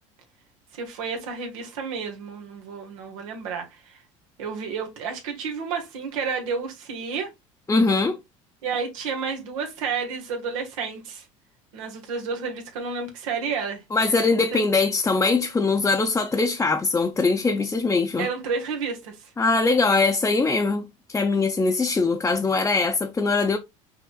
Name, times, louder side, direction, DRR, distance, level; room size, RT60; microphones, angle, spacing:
voice 1, 0.7-4.0 4.4-7.3 8.6-11.2 11.7-13.8 14.5-14.6 18.2-19.3, right 5 dB, 85° right, 1.5 m, -31 dB
voice 2, 7.7-8.2 13.9-18.3 19.4-20.8 21.1-23.6, left 3 dB, 15° left, 0.7 m, -22 dB
5.5 x 3.3 x 2.3 m
supercardioid pair, 85°, 17 cm